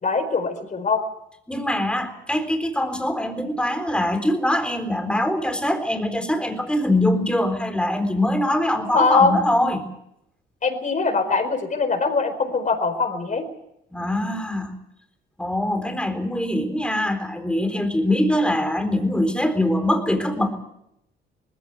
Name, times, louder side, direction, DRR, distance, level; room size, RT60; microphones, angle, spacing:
voice 1, 0.0-1.0 8.9-9.4 10.6-13.4, left 4 dB, 40° left, 7 dB, 4.6 m, -22 dB
voice 2, 1.5-9.8 13.9-14.7 15.4-20.5, left 1 dB, 5° left, 6 dB, 3.9 m, -23 dB
20.0 x 15.5 x 9.4 m, 0.81 s
cardioid pair, 90°, 20 cm